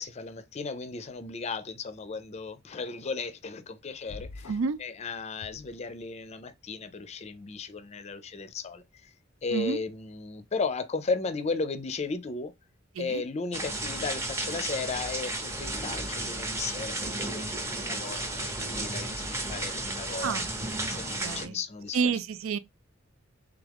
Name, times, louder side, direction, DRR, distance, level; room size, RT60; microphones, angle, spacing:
voice 1, 0.0-9.1 9.4-12.5 13.0-20.3 20.9-22.2, left 4 dB, 35° left, 0.5 m, -35 dB
sound 1, 4.1-4.8 5.3-6.3, left 3 dB, 85° left, 0.4 m, -46 dB
voice 2, 4.5-4.8 9.5-9.8 13.0-13.2 20.2-20.5 20.9-21.6 21.9-22.6, right 5 dB, 85° right, 0.4 m, -29 dB
sound 2, 13.5-21.5, right 2 dB, 15° right, 0.7 m, -33 dB
3.6 x 3.5 x 3.4 m
head